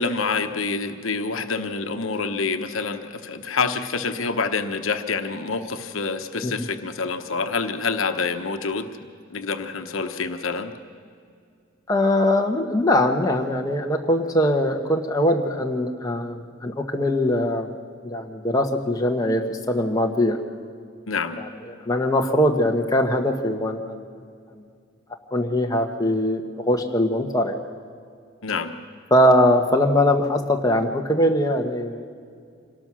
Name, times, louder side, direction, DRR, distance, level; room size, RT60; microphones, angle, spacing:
voice 1, 0.0-8.9 9.3-10.7 21.1-21.4 28.4-28.7, left 4 dB, 80° left, 7 dB, 1.1 m, -27 dB
voice 2, 11.9-17.7 18.0-20.4 21.4-24.1 25.3-27.6 29.1-32.1, left 1 dB, 20° left, 2 dB, 1.3 m, -21 dB
26.5 x 18.0 x 6.3 m, 2.3 s
head